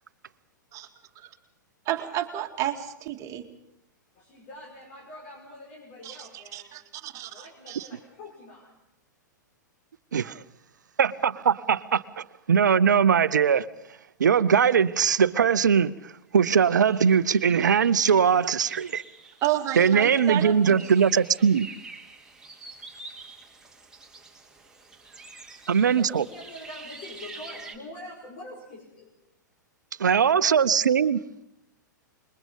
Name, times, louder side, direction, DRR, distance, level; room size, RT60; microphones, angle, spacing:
voice 1, 1.9-3.5 6.0-6.3 6.5-7.9 19.4-20.8, right 13 dB, 30° right, 2.0 m, -31 dB
voice 2, 4.1-6.8 7.2-8.7 25.8-29.2, left 1 dB, 45° left, 5.2 m, -44 dB
voice 3, 11.0-12.0 12.5-13.7 14.2-19.0 19.8-21.7 25.7-26.2 30.0-31.2, right 7 dB, 70° right, 0.8 m, -21 dB
sound 1, 16.6-27.8, right 3 dB, 5° right, 2.4 m, -47 dB
26.5 x 22.0 x 5.4 m
figure-of-eight pair, 105°, 10 cm